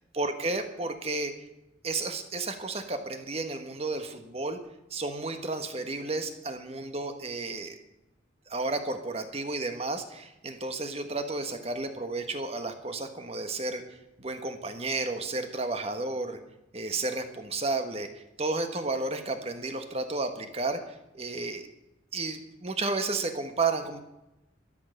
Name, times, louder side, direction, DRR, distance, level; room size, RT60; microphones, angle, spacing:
voice 1, 0.1-1.3 1.8-4.6 4.9-7.7 8.5-13.8 14.2-16.4 16.7-20.8 21.1-21.6 22.1-24.0, right 3 dB, 30° right, 7 dB, 1.4 m, -32 dB
13.0 x 11.5 x 6.6 m, 0.93 s
head